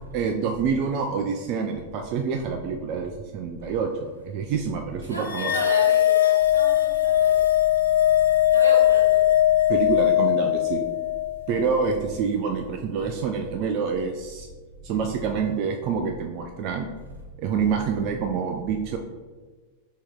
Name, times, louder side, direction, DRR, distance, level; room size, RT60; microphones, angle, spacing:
voice 1, 0.1-5.5 9.7-10.8 11.5-14.5 14.8-16.9 17.4-19.0, right 6 dB, 40° right, 3 dB, 0.3 m, -27 dB
voice 2, 5.1-6.1 6.5-7.3 8.5-9.0, equal, 80° right, -2 dB, 1.1 m, -34 dB
sound 1, 5.2-11.8, left 12 dB, 60° left, 0.4 m, -20 dB
4.3 x 2.9 x 3.6 m, 1.4 s
figure-of-eight pair, 90°, 0 cm